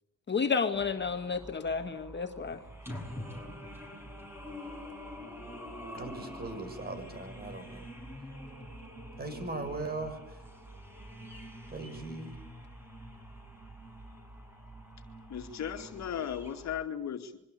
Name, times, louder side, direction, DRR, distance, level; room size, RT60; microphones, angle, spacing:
voice 1, 0.3-2.6, left 5 dB, 35° left, 6 dB, 1.9 m, -31 dB
sound 1, 0.7-16.8, equal, 5° right, 7.4 m, -46 dB
voice 2, 5.9-7.9 9.2-10.4 11.7-12.3, right 2 dB, 30° right, 9 dB, 6.7 m, -39 dB
voice 3, 15.3-17.4, left 9 dB, 65° left, 5 dB, 2.4 m, -37 dB
26.0 x 23.5 x 8.4 m, 0.80 s
cardioid pair, 90°, 30 cm